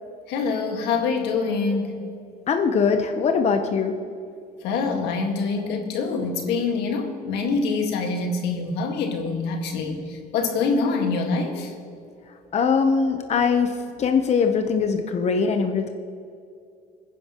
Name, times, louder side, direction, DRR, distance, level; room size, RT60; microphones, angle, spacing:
voice 1, 0.3-2.1 4.6-11.7, left 4 dB, 85° left, 3 dB, 1.8 m, -25 dB
voice 2, 2.5-3.9 12.5-13.7 14.0-15.9, left 5 dB, 40° left, 5 dB, 0.9 m, -21 dB
21.5 x 10.5 x 3.0 m, 2.5 s
cardioid pair, 110°, 17 cm